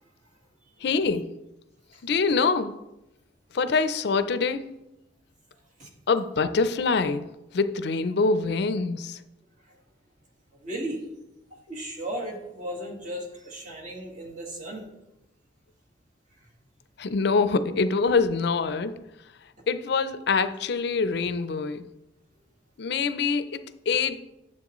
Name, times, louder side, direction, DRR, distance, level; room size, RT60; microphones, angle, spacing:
voice 1, 0.8-1.3 2.0-2.8 3.5-4.7 6.1-7.3 7.5-9.2 17.0-19.0 19.7-21.9 22.8-24.2, left 4 dB, 65° left, 0.5 m, -25 dB
voice 2, 10.6-11.0 11.7-14.8, right 1 dB, 45° right, 1.7 m, -35 dB
9.6 x 7.4 x 3.0 m
head